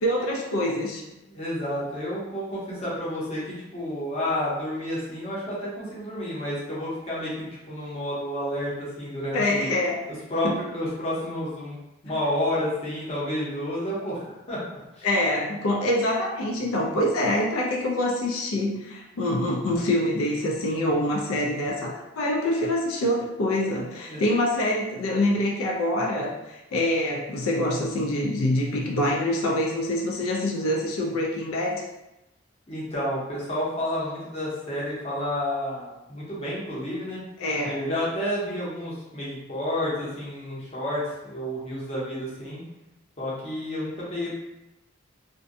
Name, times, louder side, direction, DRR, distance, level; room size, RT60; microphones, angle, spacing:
voice 1, 0.0-1.0 9.3-10.0 10.4-10.6 12.1-12.2 15.0-31.9 37.4-37.8, left 1 dB, 85° left, -1 dB, 0.4 m, -25 dB
voice 2, 1.3-9.7 10.3-11.8 12.0-14.6 14.9-15.1 24.1-24.2 32.7-37.2 37.6-42.6 43.2-44.3, left 1 dB, 30° left, -7 dB, 0.7 m, -30 dB
2.5 x 2.1 x 2.5 m, 0.97 s
head